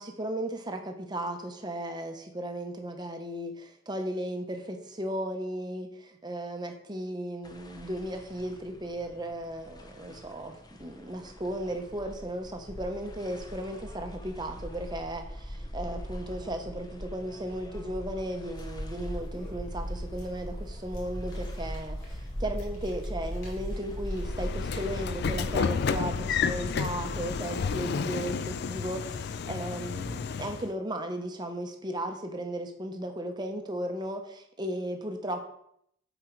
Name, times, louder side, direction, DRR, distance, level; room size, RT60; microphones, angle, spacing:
voice 1, 0.0-10.5 10.8-35.4, right 1 dB, 20° right, 4 dB, 0.8 m, -35 dB
sound 1, 7.4-25.5, equal, 20° left, 0.7 m, -41 dB
sound 2, 18.6-27.4, equal, 80° left, 2.8 m, -41 dB
Train / Sliding door, 24.1-30.7, left 6 dB, 55° left, 0.3 m, -31 dB
7.9 x 4.5 x 4.5 m, 0.71 s
head